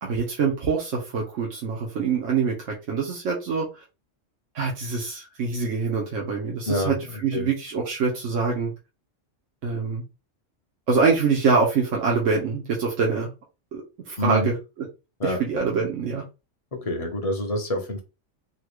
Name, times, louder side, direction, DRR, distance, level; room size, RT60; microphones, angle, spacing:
voice 1, 0.0-3.8 4.5-7.0 7.2-8.7 9.6-10.0 10.9-13.3 13.7-14.5 15.2-16.2, right 5 dB, 90° right, 1.2 m, -25 dB
voice 2, 14.2-14.5 15.2-15.4 16.7-18.0, left 1 dB, 35° left, 0.7 m, -26 dB
4.0 x 2.2 x 3.0 m
omnidirectional pair, 1.3 m